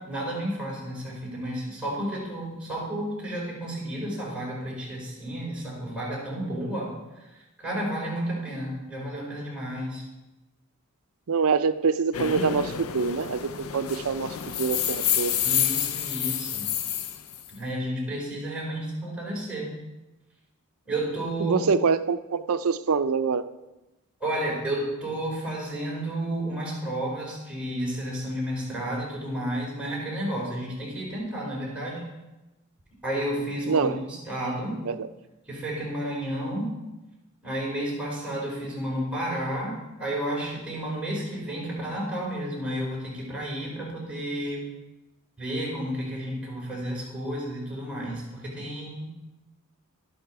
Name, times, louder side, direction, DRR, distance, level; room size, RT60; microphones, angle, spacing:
voice 1, 0.0-6.9 7.6-10.0 15.4-16.7 17.5-19.8 20.9-21.6 24.2-32.0 33.0-34.8 35.5-36.7 37.4-44.7 45.4-49.2, right 1 dB, 5° right, -6 dB, 5.2 m, -31 dB
voice 2, 11.3-14.3 14.6-15.3 21.4-23.4 33.7-34.0 34.8-35.1, right 5 dB, 70° right, 12 dB, 0.6 m, -25 dB
sound 1, 12.1-17.5, left 9 dB, 70° left, 0.6 m, -28 dB
12.0 x 11.5 x 4.7 m, 1.0 s
head